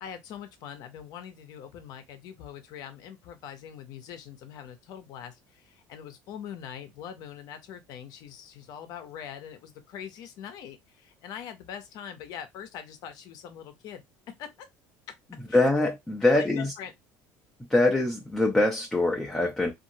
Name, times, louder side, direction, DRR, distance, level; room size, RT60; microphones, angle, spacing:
voice 1, 0.0-14.7 15.5-15.9 16.2-16.9, left 9 dB, 65° left, 0.7 m, -42 dB
voice 2, 15.5-16.7 17.6-19.7, left 2 dB, 5° left, 0.5 m, -24 dB
2.8 x 2.6 x 2.6 m
cardioid pair, 125°, 7 cm